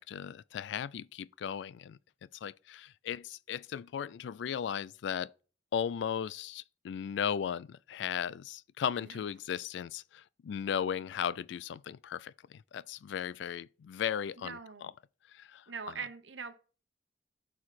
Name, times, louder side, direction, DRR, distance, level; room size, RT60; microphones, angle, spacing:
voice 1, 0.0-2.0 2.4-5.3 5.7-14.9 15.3-16.0, left 8 dB, 65° left, 0.3 m, -36 dB
voice 2, 14.4-14.9 15.7-16.5, right 6 dB, 80° right, 1.1 m, -42 dB
11.5 x 4.8 x 4.2 m
head